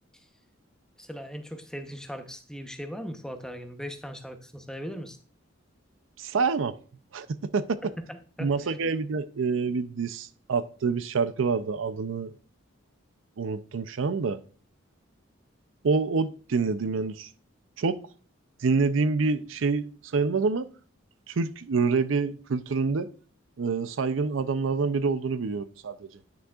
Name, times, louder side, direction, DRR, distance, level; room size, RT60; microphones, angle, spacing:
voice 1, 1.0-5.2 7.8-8.5, equal, 5° left, 0.8 m, -39 dB
voice 2, 6.2-6.8 7.1-7.8 8.4-12.3 13.4-14.4 15.8-17.3 17.8-18.0 18.6-20.7 21.3-23.1 23.6-26.1, right 4 dB, 70° right, 0.5 m, -27 dB
9.9 x 6.3 x 2.4 m
head